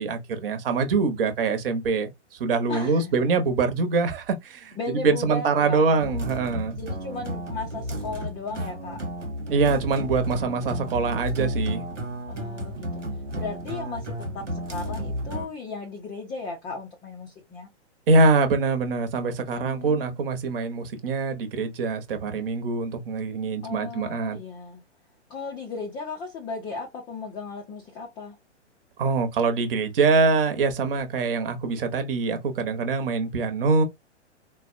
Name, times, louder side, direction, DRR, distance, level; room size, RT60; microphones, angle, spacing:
voice 1, 0.0-2.1 2.4-4.8 5.0-6.8 9.5-11.8 18.1-24.4 29.0-33.8, right 4 dB, 50° right, 1.1 m, -24 dB
voice 2, 2.7-3.1 4.8-6.0 6.7-9.0 12.3-12.9 13.3-17.7 19.5-20.2 23.6-24.8 25.3-28.4, left 4 dB, 15° left, 0.5 m, -36 dB
sound 1, 6.0-15.5, equal, 90° right, 1.0 m, -32 dB
4.0 x 2.2 x 2.5 m
figure-of-eight pair, 120°, 36 cm